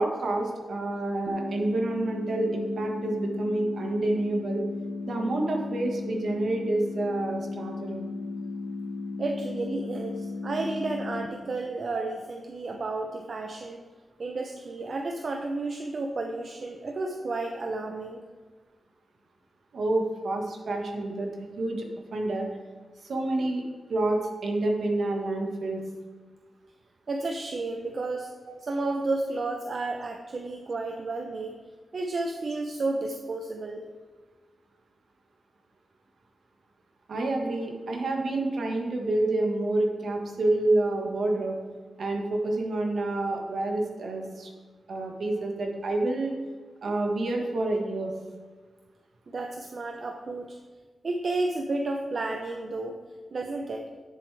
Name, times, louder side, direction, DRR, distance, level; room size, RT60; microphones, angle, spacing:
voice 1, 0.0-4.6 5.1-8.1 11.9-12.0 19.7-22.5 23.0-23.6 23.9-25.8 28.5-28.6 37.1-41.6 42.0-44.5 44.9-46.3 46.8-48.1, right 2 dB, 70° right, 2 dB, 1.5 m, -28 dB
sound 1, 1.3-11.3, left 3 dB, 50° left, 1.0 m, -35 dB
voice 2, 9.2-13.8 14.2-18.2 27.1-28.3 28.6-31.6 31.9-33.9 49.3-50.6 51.0-53.0 53.3-53.9, right 2 dB, 50° right, 3 dB, 0.7 m, -32 dB
11.0 x 7.0 x 3.4 m, 1.5 s
wide cardioid pair, 100°, 0 cm